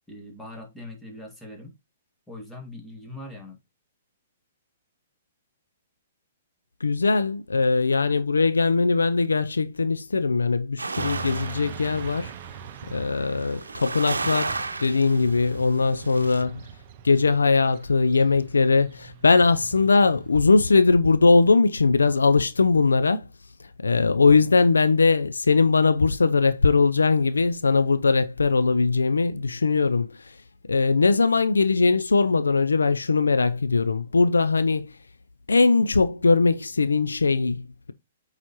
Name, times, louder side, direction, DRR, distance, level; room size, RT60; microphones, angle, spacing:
voice 1, 0.1-1.7 2.3-3.6, left 1 dB, 5° left, 2.0 m, -41 dB
voice 2, 6.8-12.3 12.9-16.6 17.0-23.3 23.8-30.4 30.7-34.9 35.5-37.9, left 4 dB, 85° left, 0.5 m, -20 dB
sound 1, 10.8-13.0 13.4-15.5 15.9-16.4, right 3 dB, 90° right, 0.7 m, -33 dB
Motorcycle / Traffic noise roadway noise, 11.0-20.4, right 8 dB, 40° right, 0.6 m, -42 dB
8.7 x 4.1 x 3.0 m
hypercardioid pair, 125°, 0 cm